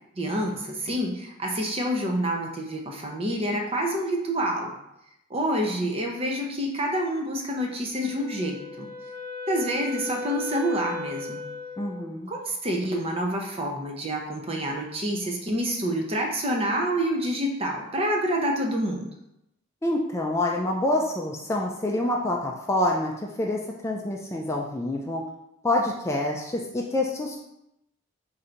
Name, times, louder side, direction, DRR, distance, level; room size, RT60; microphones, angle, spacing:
voice 1, 0.2-4.7 5.3-8.9 9.5-11.4 12.3-19.1, equal, 30° right, 1 dB, 0.6 m, -27 dB
Wind instrument woodwind instrument, 8.0-12.0, left 2 dB, 85° right, 1.5 m, -36 dB
voice 2, 11.8-12.3 19.8-25.2 25.6-27.4, left 1 dB, 15° left, -1 dB, 0.4 m, -27 dB
3.8 x 2.7 x 4.4 m, 0.83 s
head